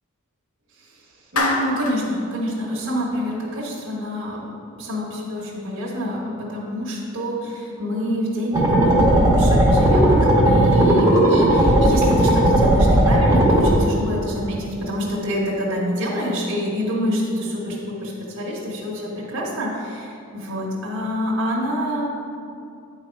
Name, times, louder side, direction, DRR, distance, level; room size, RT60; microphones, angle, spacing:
voice 1, 1.3-22.0, equal, 60° right, -5 dB, 1.4 m, -27 dB
Clapping, 1.4-2.0, left 2 dB, 75° left, 0.9 m, -23 dB
sound 1, 8.5-13.7, right 1 dB, 15° right, 1.4 m, -16 dB
9.8 x 4.1 x 4.7 m, 2.5 s
head